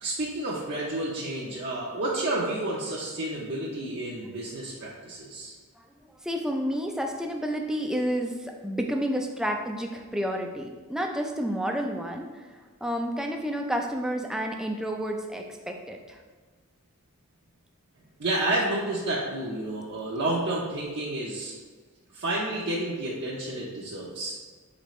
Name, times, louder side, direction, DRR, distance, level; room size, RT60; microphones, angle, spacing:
voice 1, 0.0-5.5 18.2-21.5 22.1-24.3, right 1 dB, 50° right, -6 dB, 0.7 m, -30 dB
voice 2, 6.2-12.5 12.8-16.2, equal, 5° right, 2 dB, 0.3 m, -30 dB
5.2 x 3.3 x 3.1 m, 1.4 s
head